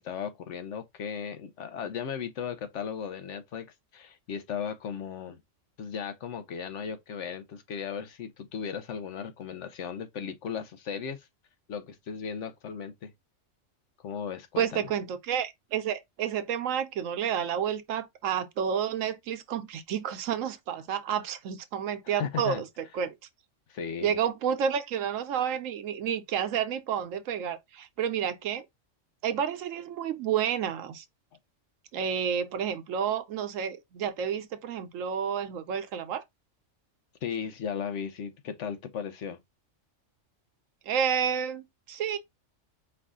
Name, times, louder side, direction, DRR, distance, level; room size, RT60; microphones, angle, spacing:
voice 1, 0.0-3.7 3.9-5.4 5.8-11.3 11.7-13.1 14.0-14.9 22.0-22.6 23.7-24.2 37.2-39.4, left 7 dB, 70° left, 1.1 m, -36 dB
voice 2, 14.6-22.7 22.9-23.1 24.0-28.6 29.2-31.0 31.9-36.2 40.9-42.2, right 8 dB, 85° right, 1.1 m, -30 dB
4.7 x 2.5 x 3.6 m
omnidirectional pair, 1.3 m